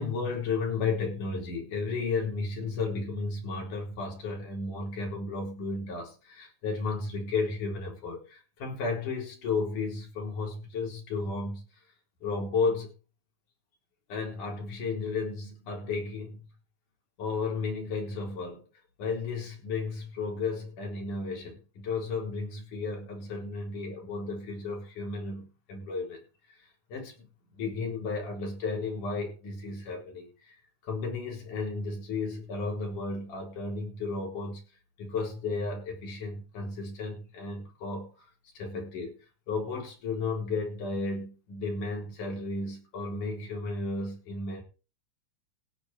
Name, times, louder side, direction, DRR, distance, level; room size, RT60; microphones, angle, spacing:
voice 1, 0.0-11.6 12.2-12.9 14.1-16.4 17.2-18.6 19.0-26.2 26.5-26.6 26.9-30.6 30.8-34.6 35.0-38.3 38.6-39.2 39.5-44.6, left 4 dB, 80° left, 5.6 m, -33 dB
16.5 x 8.4 x 4.5 m
omnidirectional pair, 3.6 m